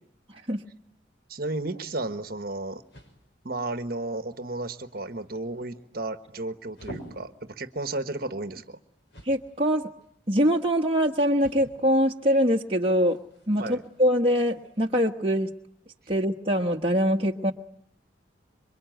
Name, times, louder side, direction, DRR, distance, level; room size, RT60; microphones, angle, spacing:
voice 1, 1.3-2.8 3.4-8.8 13.6-13.8, right 2 dB, 50° right, 9 dB, 1.3 m, -33 dB
sound 1, 2.5-15.0, equal, 65° left, 5.7 m, -52 dB
voice 2, 9.3-9.8 10.3-13.2 13.5-15.5 16.1-17.5, equal, 30° right, 0 dB, 1.3 m, -23 dB
27.0 x 24.0 x 9.2 m, 0.72 s
head